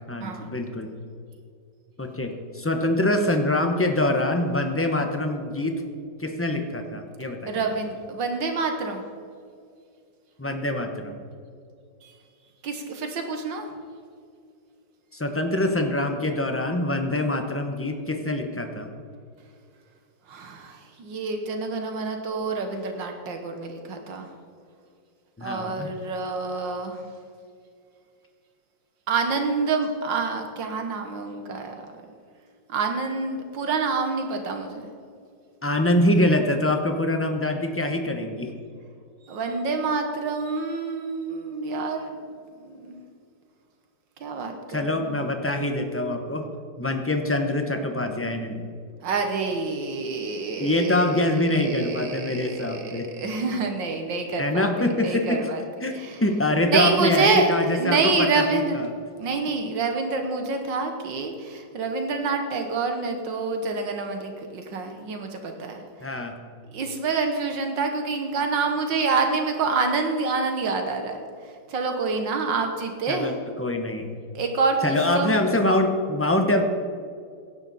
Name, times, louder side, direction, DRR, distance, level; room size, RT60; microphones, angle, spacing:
voice 1, 0.1-0.9 2.0-5.8 6.2-7.8 10.4-11.2 15.1-18.9 25.4-25.9 35.6-38.5 44.7-46.4 46.8-48.6 50.6-53.1 54.4-55.5 55.8-58.9 66.0-66.3 73.1-73.3 73.6-74.1 74.8-76.6, left 1 dB, 10° left, 4 dB, 0.6 m, -24 dB
voice 2, 7.5-9.0 12.0-12.1 12.6-13.6 20.3-24.3 25.4-27.0 29.1-31.7 32.7-34.9 39.3-42.2 42.6-42.9 44.2-45.1 49.0-55.6 55.9-56.2 56.6-58.8 59.2-65.8 66.7-71.2 71.7-73.3 74.4-75.4, right 4 dB, 75° right, 5 dB, 1.9 m, -27 dB
17.0 x 11.0 x 4.2 m, 2.3 s
omnidirectional pair, 2.0 m